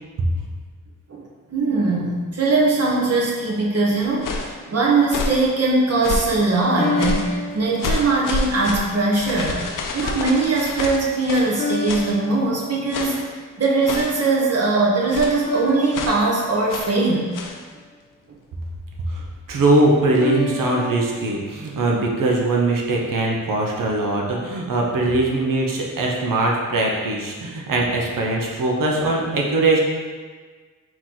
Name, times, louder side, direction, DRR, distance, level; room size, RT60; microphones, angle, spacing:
voice 1, 1.5-9.6 9.9-17.3 18.3-18.4, right 3 dB, 50° right, -4 dB, 1.1 m, -21 dB
sound 1, 3.0-3.8 6.8-8.8 9.4-9.8 11.6-13.5 15.5-17.9 20.2-21.3, left 3 dB, 30° left, 0.7 m, -31 dB
sound 2, 4.0-4.6 5.0-5.5 6.0-6.4 7.0-7.4 7.8-11.5 11.9-12.1 12.9-13.3 13.8-14.3 15.1-15.4 15.9-16.2 16.7-17.0 17.3-17.6, left 4 dB, 70° left, 0.6 m, -28 dB
voice 2, 19.5-29.8, right 2 dB, 75° right, -1 dB, 0.9 m, -21 dB
4.6 x 3.0 x 3.9 m, 1.5 s
cardioid pair, 85°, 33 cm